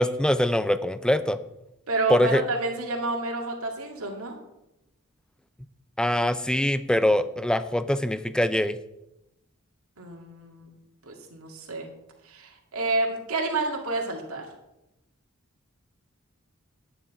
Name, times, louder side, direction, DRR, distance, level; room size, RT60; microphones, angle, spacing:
voice 1, 0.0-1.4 2.1-2.4 6.0-8.8, left 1 dB, 5° left, 13 dB, 0.4 m, -23 dB
voice 2, 1.9-4.3 10.0-10.7 11.1-11.9 12.3-14.5, right 3 dB, 80° right, 0 dB, 2.2 m, -29 dB
10.0 x 9.6 x 4.8 m, 0.91 s
head